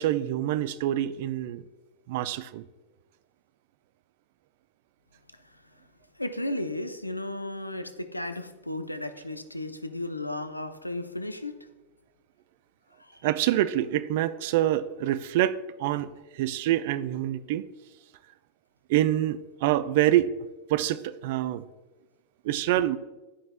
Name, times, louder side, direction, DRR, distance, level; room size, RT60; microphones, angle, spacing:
voice 1, 0.0-1.6 2.1-2.6 13.2-17.6 18.9-20.3 20.7-21.6 22.4-23.0, right 13 dB, 50° right, 14 dB, 0.3 m, -26 dB
voice 2, 6.2-11.5, left 1 dB, 85° left, 10 dB, 0.5 m, -34 dB
11.0 x 5.3 x 2.3 m, 1.1 s
figure-of-eight pair, 90°, 0 cm